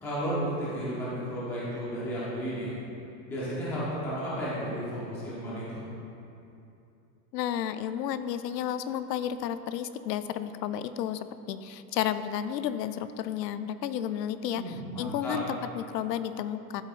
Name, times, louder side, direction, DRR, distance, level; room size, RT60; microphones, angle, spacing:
voice 1, 0.0-2.7 3.3-5.8 14.5-15.4, equal, 5° left, -9 dB, 0.7 m, -33 dB
voice 2, 7.3-16.8, left 10 dB, 80° left, 12 dB, 0.6 m, -32 dB
12.0 x 8.0 x 2.5 m, 2.8 s
supercardioid pair, 175°, 49 cm